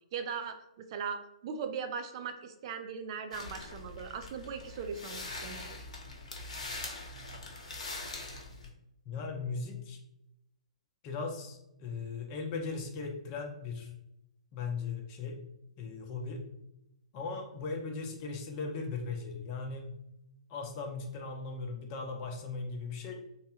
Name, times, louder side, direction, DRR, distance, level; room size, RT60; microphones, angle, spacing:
voice 1, 0.1-0.6 0.9-5.8, right 6 dB, 45° right, 7 dB, 0.4 m, -39 dB
sound 1, 3.3-8.7, left 2 dB, 70° left, 0.8 m, -43 dB
voice 2, 9.1-10.0 11.0-13.9 14.5-15.4 15.8-16.4 17.1-19.9 20.5-23.2, left 4 dB, 35° left, 2 dB, 0.7 m, -38 dB
3.2 x 2.2 x 2.9 m, 0.83 s
hypercardioid pair, 125°, 4 cm